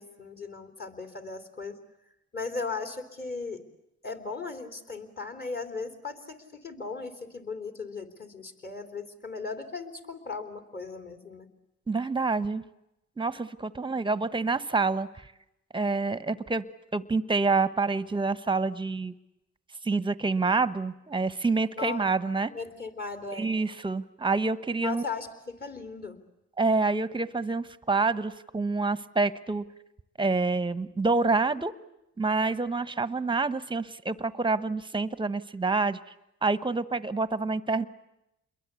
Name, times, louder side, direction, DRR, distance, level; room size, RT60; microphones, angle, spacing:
voice 1, 0.0-1.8 2.3-3.6 4.0-11.5 21.8-22.1 22.5-23.5 24.8-26.2, left 4 dB, 30° left, 7 dB, 3.6 m, -37 dB
voice 2, 11.9-12.6 13.2-15.3 15.7-16.6 16.9-19.1 19.8-22.5 23.4-25.0 26.6-29.6 30.2-31.7 32.2-36.0 36.4-37.8, right 3 dB, 15° right, 14 dB, 1.1 m, -27 dB
28.5 x 22.0 x 8.4 m, 0.86 s
cardioid pair, 90°, 30 cm